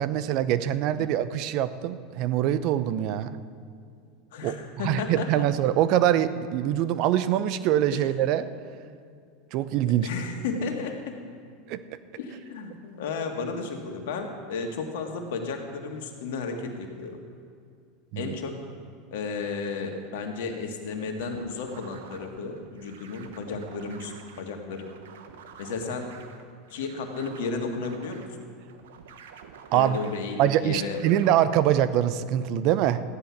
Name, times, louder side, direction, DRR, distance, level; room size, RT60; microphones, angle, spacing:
voice 1, 0.0-3.4 4.4-4.5 4.8-8.5 9.5-10.1 11.7-11.8 18.1-18.3 29.7-30.0 30.4-33.0, right 11 dB, 55° right, 13 dB, 0.7 m, -24 dB
voice 2, 4.3-5.5 7.9-8.1 10.0-11.2 12.2-17.2 18.2-18.6 19.1-24.9 25.6-26.1 26.7-28.3 29.7-31.0, left 4 dB, 70° left, 3 dB, 1.9 m, -33 dB
sound 1, 21.2-31.3, right 7 dB, 75° right, 1.0 m, -49 dB
14.5 x 10.5 x 5.9 m, 2.3 s
hypercardioid pair, 90°, 0 cm